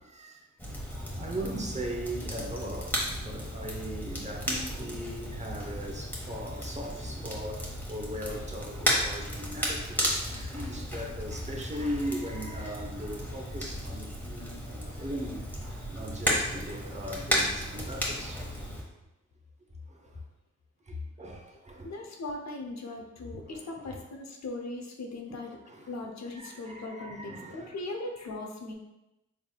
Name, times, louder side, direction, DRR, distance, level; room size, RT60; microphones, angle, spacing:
voice 1, 0.0-18.7 19.9-20.2 20.8-22.1 23.3-24.0 25.3-25.9 26.3-27.7, equal, 20° right, 0 dB, 0.8 m, -39 dB
Crackle, 0.6-18.8, equal, 5° left, 1.3 m, -34 dB
voice 2, 21.8-25.6 25.9-28.7, left 2 dB, 60° left, 2 dB, 0.7 m, -39 dB
4.3 x 3.4 x 2.3 m, 0.93 s
cardioid pair, 55°, 31 cm